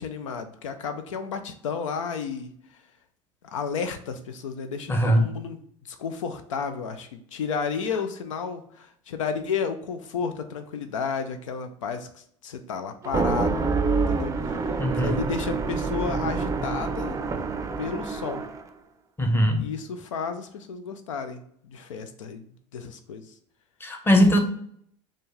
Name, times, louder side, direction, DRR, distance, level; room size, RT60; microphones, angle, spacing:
voice 1, 0.0-2.8 3.4-5.6 5.9-13.7 14.1-17.2 17.8-18.4 19.5-22.5 22.7-23.3, left 6 dB, 85° left, 8 dB, 0.4 m, -32 dB
voice 2, 4.9-5.2 14.8-15.2 19.2-19.6 23.8-24.4, equal, 15° left, 5 dB, 0.8 m, -20 dB
sound 1, 13.0-18.7, right 4 dB, 20° right, 0.4 m, -27 dB
4.3 x 2.4 x 3.1 m, 0.67 s
hypercardioid pair, 80°, 16 cm